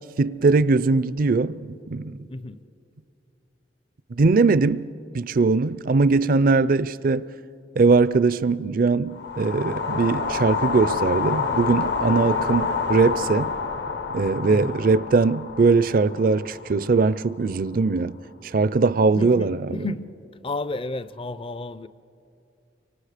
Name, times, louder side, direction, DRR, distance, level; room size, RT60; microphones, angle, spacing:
voice 1, 0.2-2.3 4.1-4.9 5.1-7.3 7.8-13.5 14.1-18.2 18.4-19.6, right 4 dB, 50° right, 0.4 m, -21 dB
voice 2, 2.3-2.6 14.5-14.8 19.2-20.1 20.4-21.9, left 2 dB, 30° left, 0.4 m, -32 dB
sound 1, 9.1-17.4, left 5 dB, 60° left, 0.8 m, -28 dB
29.5 x 25.0 x 5.0 m
head